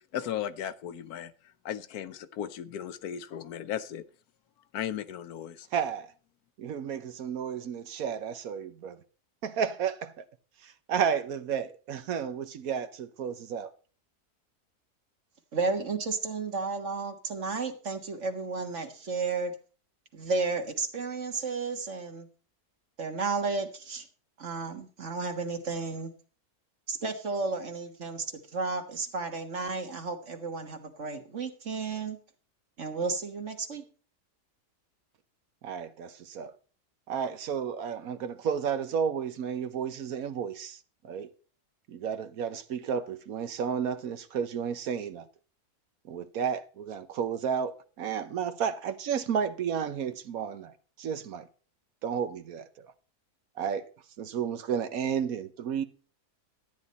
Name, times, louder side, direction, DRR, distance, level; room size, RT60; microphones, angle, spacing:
voice 1, 0.1-1.3 1.6-4.0 4.7-5.7, left 10 dB, 75° left, 1.2 m, -36 dB
voice 2, 5.7-6.1 6.6-9.0 9.4-10.2 10.6-13.7 35.6-36.5 37.1-40.8 41.0-41.3 41.9-45.3 46.1-51.5 52.0-52.9 53.6-53.9 54.2-55.8, right 7 dB, 70° right, 1.2 m, -32 dB
voice 3, 15.5-19.5 20.1-22.3 23.0-24.0 24.4-26.1 26.9-28.3 28.5-32.2 32.8-33.8, right 4 dB, 50° right, 1.7 m, -32 dB
12.5 x 9.7 x 4.1 m
omnidirectional pair, 1.6 m